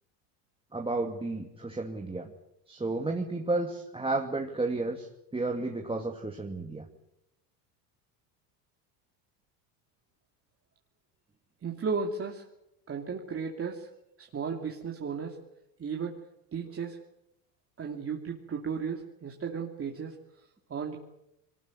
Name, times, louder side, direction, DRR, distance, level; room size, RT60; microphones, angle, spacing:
voice 1, 0.7-2.3 2.7-5.1 5.3-6.9, right 2 dB, 10° right, 1 dB, 2.4 m, -32 dB
voice 2, 11.6-12.4 12.9-13.9 14.2-15.4 15.8-16.2 16.5-17.0 17.8-20.1 20.7-21.0, right 5 dB, 30° right, 1 dB, 2.8 m, -34 dB
22.5 x 19.5 x 9.7 m, 0.85 s
supercardioid pair, 100°, 47 cm